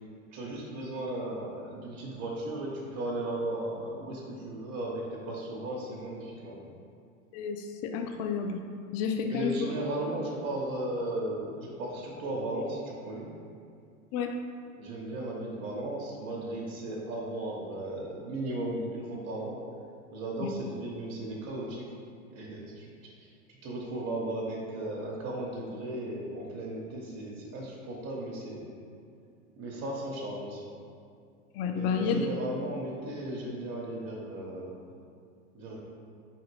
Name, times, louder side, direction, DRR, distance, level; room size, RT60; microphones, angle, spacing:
voice 1, 0.3-6.8 9.2-13.3 14.8-19.6 20.1-21.9 22.3-22.9 23.1-28.7 29.5-30.7 31.7-34.8 35.5-35.8, right 1 dB, 40° right, -4 dB, 0.9 m, -36 dB
voice 2, 7.3-8.6 8.9-9.8 14.1-14.4 20.4-20.5 31.5-32.3, left 6 dB, 40° left, 5 dB, 0.4 m, -30 dB
4.9 x 2.9 x 3.2 m, 2.3 s
hypercardioid pair, 80°, 40 cm